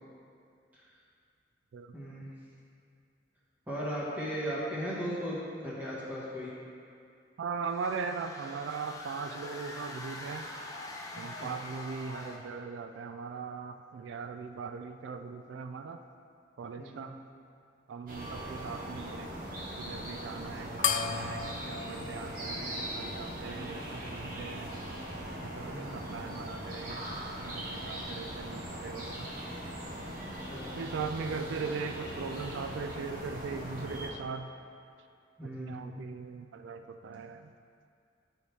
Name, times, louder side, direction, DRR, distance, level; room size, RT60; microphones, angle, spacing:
voice 1, 1.9-2.3 3.7-6.5 11.1-11.6 16.8-17.1 25.6-26.2 30.4-30.7 35.4-36.0, equal, 10° right, -8 dB, 1.7 m, -37 dB
voice 2, 7.4-10.5 11.2-16.0 16.6-17.2 17.9-19.3 19.8-24.7 25.4-27.0 27.4-29.3 30.8-34.5 35.4-37.5, right 5 dB, 85° right, 7 dB, 0.3 m, -39 dB
sound 1, 7.6-12.6, left 1 dB, 20° left, 0.7 m, -44 dB
sound 2, 18.1-34.1, right 1 dB, 50° right, 1.3 m, -40 dB
sound 3, 20.8-23.6, left 8 dB, 45° left, 0.3 m, -35 dB
11.0 x 4.8 x 3.5 m, 2.4 s
head